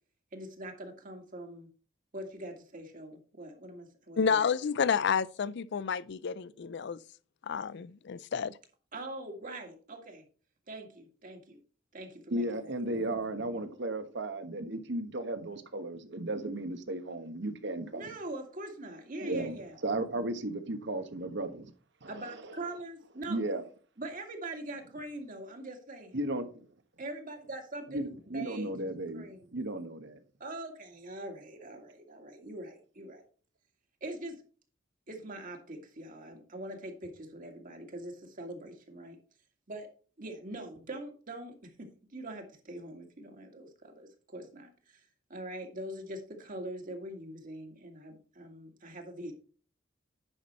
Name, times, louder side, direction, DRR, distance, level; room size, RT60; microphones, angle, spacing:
voice 1, 0.3-1.7 2.1-4.4 8.9-10.2 10.7-11.6 11.9-13.0 17.9-19.8 22.1-23.4 24.0-26.2 27.0-28.8 29.1-29.5 30.4-33.2 34.0-34.4 35.1-39.2 39.7-39.9 40.2-45.0 45.3-49.3, right 1 dB, 45° right, 2.0 m, -43 dB
voice 2, 4.2-7.0 7.5-8.6, left 6 dB, 60° left, 0.4 m, -30 dB
voice 3, 12.3-18.1 19.2-19.6 19.8-21.7 22.0-22.4 23.3-23.6 26.1-26.5 27.9-30.2, right 1 dB, 60° right, 1.3 m, -35 dB
10.0 x 6.1 x 4.3 m
head